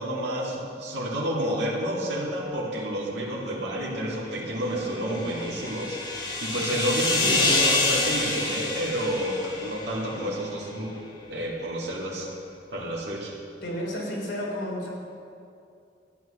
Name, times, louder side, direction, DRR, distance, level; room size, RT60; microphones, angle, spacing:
voice 1, 0.0-11.0 11.3-12.3 12.7-13.3, equal, 70° right, -5 dB, 2.4 m, -30 dB
sound 1, 4.7-10.2, left 3 dB, 25° left, 1.5 m, -27 dB
voice 2, 7.2-7.7 13.6-14.9, equal, 80° left, -3 dB, 3.5 m, -31 dB
12.5 x 9.5 x 6.5 m, 2.5 s
head